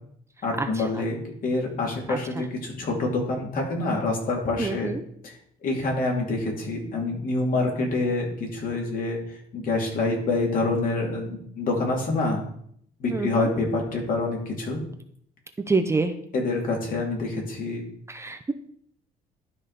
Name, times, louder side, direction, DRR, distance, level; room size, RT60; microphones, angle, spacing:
voice 1, 0.4-1.2 1.4-4.9 5.2-5.3 5.6-9.2 9.5-12.4 13.0-14.8 16.3-17.8, left 2 dB, 55° left, 0 dB, 2.8 m, -26 dB
voice 2, 4.6-5.0 13.1-13.5 15.7-16.1 18.1-18.5, right 3 dB, 15° right, 7 dB, 0.7 m, -26 dB
12.0 x 5.0 x 4.2 m, 0.67 s
cardioid pair, 110°, 17 cm